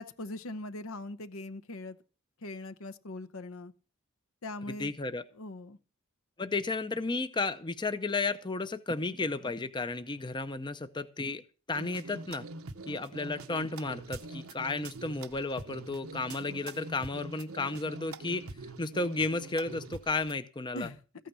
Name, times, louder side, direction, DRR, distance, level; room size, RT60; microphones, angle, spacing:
voice 1, 0.0-2.0 2.4-3.7 4.4-4.9 5.3-5.8 20.7-21.0, left 2 dB, 70° left, 0.9 m, -41 dB
voice 2, 4.8-5.2 6.4-11.4 11.7-12.5 12.9-18.4 18.8-20.9, left 3 dB, 20° left, 0.6 m, -33 dB
sound 1, 11.7-20.3, right 3 dB, 80° right, 1.0 m, -44 dB
14.5 x 9.2 x 5.6 m
head